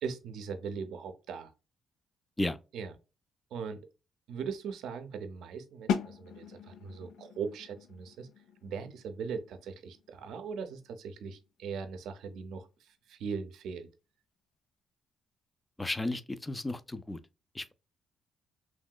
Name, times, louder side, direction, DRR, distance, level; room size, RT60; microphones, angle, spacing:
voice 1, 0.0-1.5 2.7-2.9 3.5-3.9 4.3-8.3 8.6-13.9, right 6 dB, 80° right, 0.5 m, -39 dB
sound 1, 5.9-11.6, left 7 dB, 90° left, 0.4 m, -39 dB
voice 2, 15.8-17.2 17.6-17.7, left 2 dB, 15° left, 0.4 m, -33 dB
3.0 x 2.8 x 2.2 m
cardioid pair, 90°, 0 cm